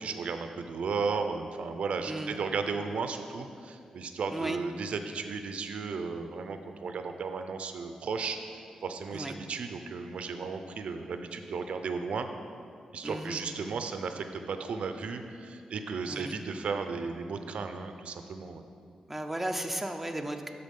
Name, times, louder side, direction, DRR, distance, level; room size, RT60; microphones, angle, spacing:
voice 1, 0.0-8.4 8.8-12.3 12.9-18.6, right 5 dB, 70° right, 7 dB, 0.5 m, -35 dB
voice 2, 13.0-13.4 16.1-16.4 19.1-20.5, right 1 dB, 5° right, 4 dB, 0.5 m, -34 dB
12.0 x 4.0 x 5.3 m, 2.4 s
cardioid pair, 100°, 2 cm